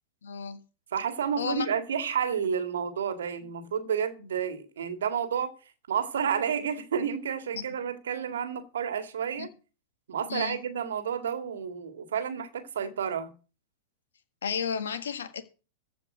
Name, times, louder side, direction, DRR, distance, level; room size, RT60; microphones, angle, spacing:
voice 1, 0.2-0.6 1.4-1.7 7.5-7.6 9.4-9.5 10.3-10.6 14.4-15.4, left 6 dB, 80° left, 1.6 m, -32 dB
voice 2, 0.9-5.5 5.9-9.5 10.1-13.3, right 7 dB, 75° right, 2.0 m, -30 dB
14.5 x 5.2 x 7.7 m
hypercardioid pair, 105°, 0 cm